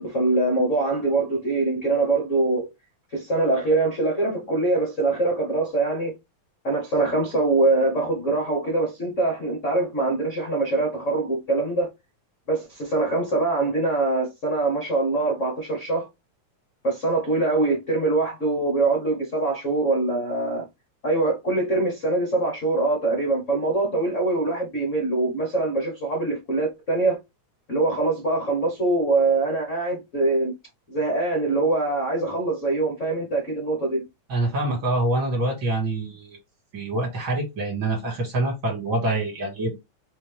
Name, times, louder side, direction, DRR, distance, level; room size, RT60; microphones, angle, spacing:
voice 1, 0.0-2.7 3.1-6.1 6.6-11.9 12.5-16.1 16.8-20.7 21.0-27.2 27.7-30.5 30.9-34.1, right 2 dB, 80° left, 0.6 m, -23 dB
voice 2, 34.3-36.4 36.7-39.7, right 2 dB, 45° right, 2.4 m, -25 dB
5.5 x 2.8 x 3.4 m
omnidirectional pair, 3.4 m